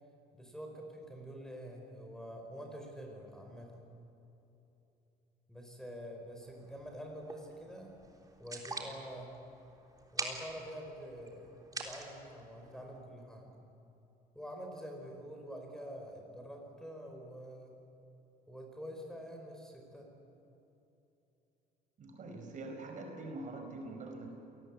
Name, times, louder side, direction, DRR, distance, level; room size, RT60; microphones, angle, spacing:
voice 1, 0.3-3.8 5.5-7.9 8.4-9.4 10.1-13.5 14.3-17.7 18.5-20.1, equal, 5° left, 2 dB, 5.0 m, -47 dB
sound 1, 6.4-13.0, right 3 dB, 20° right, 3.5 m, -46 dB
voice 2, 22.0-24.3, right 2 dB, 50° right, 3 dB, 5.1 m, -44 dB
28.0 x 19.0 x 8.6 m, 2.9 s
cardioid pair, 110°, 17 cm